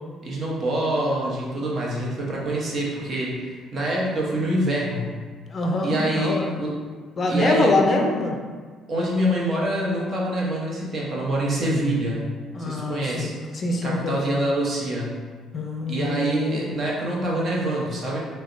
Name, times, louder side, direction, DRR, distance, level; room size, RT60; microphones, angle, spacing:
voice 1, 0.2-5.1 5.8-6.8 7.3-7.8 8.9-12.3 12.6-13.3 13.8-15.2 15.9-18.2, right 1 dB, 40° right, -4 dB, 0.9 m, -25 dB
voice 2, 5.5-6.6 7.2-8.4 12.5-14.2 15.5-16.4, left 2 dB, 40° left, 1 dB, 0.4 m, -24 dB
4.0 x 2.1 x 2.5 m, 1.5 s
cardioid pair, 90°, 0 cm